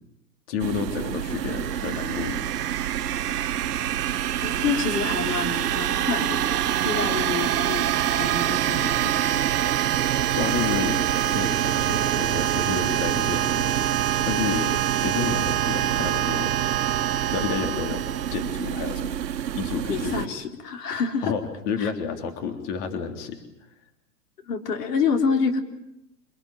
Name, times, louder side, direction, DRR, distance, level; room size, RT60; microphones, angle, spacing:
voice 1, 0.5-2.5 10.3-14.0 14.2-16.5 17.2-19.2 19.5-20.3 21.2-23.4, left 6 dB, 45° left, 6 dB, 3.5 m, -30 dB
sound 1, 0.6-20.3, right 10 dB, 90° right, 1.2 m, -30 dB
sound 2, 1.1-18.7, right 12 dB, 65° right, 1.6 m, -26 dB
voice 2, 4.4-6.4 6.8-9.4 19.9-21.3 21.8-21.9 24.5-25.6, left 5 dB, 70° left, 5 dB, 3.9 m, -27 dB
26.5 x 20.5 x 9.2 m, 0.84 s
hypercardioid pair, 140°, 48 cm